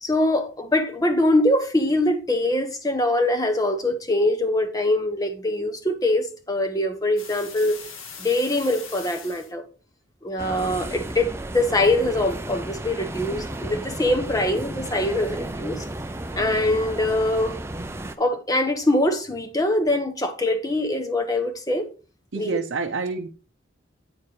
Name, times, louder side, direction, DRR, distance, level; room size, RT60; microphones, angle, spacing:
voice 1, 0.0-7.8 8.2-9.6 10.2-15.8 16.4-17.6 18.2-21.9 22.4-22.6, left 1 dB, 20° left, 0.9 m, -23 dB
sound 1, 7.2-9.5, left 6 dB, 90° left, 1.6 m, -40 dB
sound 2, 10.4-18.1, right 1 dB, 10° right, 0.5 m, -33 dB
voice 2, 22.3-23.3, right 4 dB, 70° right, 0.6 m, -27 dB
8.7 x 4.4 x 4.8 m
head